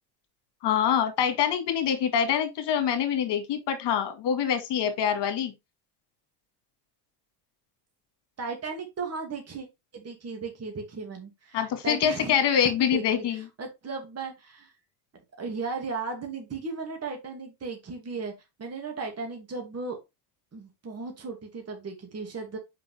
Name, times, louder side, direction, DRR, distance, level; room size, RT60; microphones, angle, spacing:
voice 1, 0.6-5.5 11.5-13.4, left 8 dB, 55° left, 2.0 m, -25 dB
voice 2, 8.4-9.7 9.9-12.3 12.9-13.0 13.3-14.7 15.4-18.3 18.6-20.0 20.5-22.6, right 4 dB, 30° right, 2.3 m, -36 dB
5.4 x 5.3 x 3.5 m
supercardioid pair, 95°, 48 cm